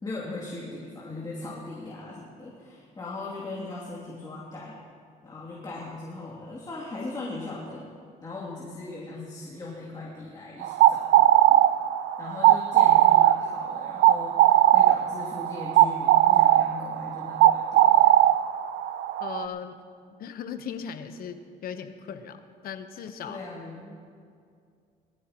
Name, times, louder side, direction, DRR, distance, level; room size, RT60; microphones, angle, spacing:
voice 1, 0.0-4.8 5.2-7.9 8.2-11.6 12.2-18.2 23.2-24.0, left 2 dB, 25° left, -6 dB, 2.8 m, -39 dB
sound 1, 10.6-19.5, right 13 dB, 85° right, 0.5 m, -19 dB
voice 2, 19.2-19.8 20.2-23.5, left 7 dB, 60° left, 8 dB, 1.1 m, -38 dB
21.5 x 14.5 x 3.0 m, 2.3 s
cardioid pair, 110°, 17 cm